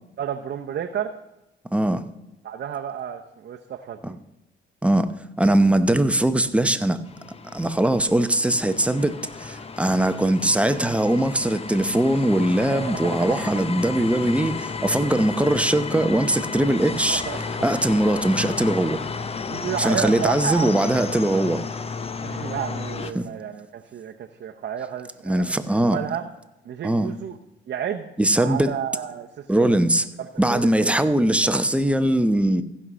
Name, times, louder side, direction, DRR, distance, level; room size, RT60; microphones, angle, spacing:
voice 1, 0.2-1.1 2.4-4.2 12.6-13.4 14.4-14.5 17.1-17.7 19.5-21.0 22.2-26.3 26.6-27.4 27.7-28.1 28.4-29.8 30.2-31.0 31.4-31.5, right 9 dB, 60° right, 0.8 m, -32 dB
voice 2, 1.7-2.0 4.0-4.1 4.8-5.1 5.4-7.0 7.5-17.2 17.6-19.0 19.8-21.6 23.2-23.3 25.2-26.0 26.8-27.1 28.2-28.7 29.5-30.0 30.4-32.6, right 1 dB, 5° right, 0.7 m, -21 dB
sound 1, 7.0-23.1, left 5 dB, 30° left, 0.7 m, -32 dB
15.0 x 5.6 x 6.1 m
cardioid pair, 90°, 20 cm